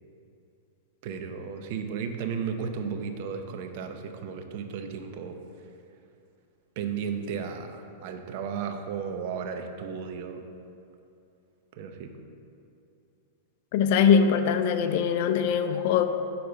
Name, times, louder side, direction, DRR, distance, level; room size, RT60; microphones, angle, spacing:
voice 1, 1.0-5.4 6.8-10.4 11.8-12.1, right 6 dB, 55° right, 6 dB, 0.7 m, -34 dB
voice 2, 13.7-16.0, left 7 dB, 55° left, 9 dB, 0.5 m, -22 dB
6.7 x 4.2 x 6.5 m, 2.7 s
hypercardioid pair, 125°, 0 cm